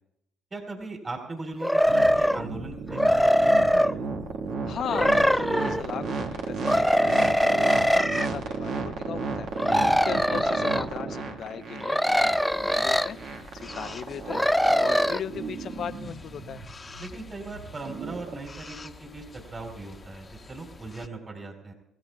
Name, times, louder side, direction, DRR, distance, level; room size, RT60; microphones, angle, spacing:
voice 1, 0.5-3.9 9.7-10.0 17.0-21.7, right 3 dB, 30° right, 2 dB, 4.0 m, -39 dB
sound 1, 1.6-2.5 2.9-3.9 4.9-5.8 6.6-8.3 9.6-10.8 11.8-13.1 14.3-15.2, equal, ahead, 0.4 m, -22 dB
sound 2, 1.9-18.4, right 4 dB, 65° right, 1.7 m, -33 dB
voice 2, 4.6-9.5 9.9-16.6, left 8 dB, 55° left, 9 dB, 0.7 m, -37 dB
sound 3, 12.2-21.1, left 3 dB, 30° left, 1.1 m, -47 dB
26.0 x 15.0 x 2.4 m, 0.82 s
hypercardioid pair, 60°, 0 cm